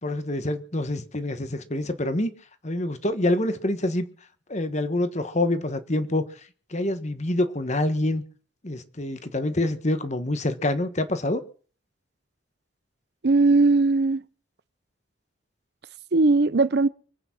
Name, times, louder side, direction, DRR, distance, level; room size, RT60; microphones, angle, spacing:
voice 1, 0.0-2.3 2.6-4.1 4.5-6.3 6.7-8.2 8.6-11.4, left 1 dB, 40° left, 1.4 m, -26 dB
voice 2, 13.2-14.2 16.1-16.9, right 3 dB, 60° right, 0.7 m, -19 dB
24.5 x 9.0 x 6.1 m
head